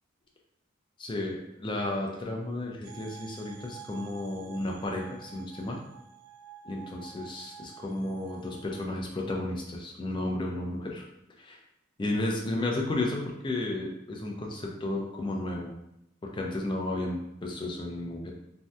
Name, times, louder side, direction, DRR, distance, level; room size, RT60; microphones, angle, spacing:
voice 1, 1.0-5.8 6.6-11.0 11.4-11.6 12.0-15.7 16.2-18.3, left 2 dB, 20° left, 0 dB, 0.3 m, -33 dB
sound 1, 2.8-8.9, right 9 dB, 80° right, 0.3 m, -49 dB
2.6 x 2.2 x 3.2 m, 0.84 s
head